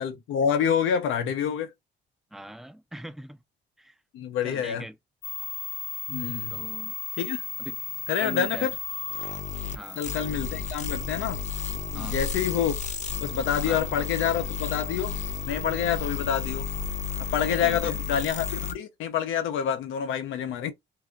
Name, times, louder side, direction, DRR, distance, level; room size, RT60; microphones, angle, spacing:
voice 1, 0.0-1.7 4.1-4.9 6.1-6.6 7.2-7.4 8.1-8.7 10.0-11.4 11.9-12.8 13.2-15.2 15.5-16.7 17.3-20.7, left 8 dB, 90° left, 0.7 m, -27 dB
voice 2, 2.3-3.4 3.8-3.9 4.4-5.0 6.5-6.9 7.6-7.8 8.2-8.7 9.7-10.0 11.9-12.2 13.7-13.8 17.6-18.0, right 1 dB, ahead, 0.4 m, -40 dB
sound 1, 5.2-18.7, left 9 dB, 35° left, 0.7 m, -33 dB
sound 2, 10.2-18.5, right 2 dB, 55° right, 0.8 m, -41 dB
2.8 x 2.4 x 3.8 m
cardioid pair, 90°, 20 cm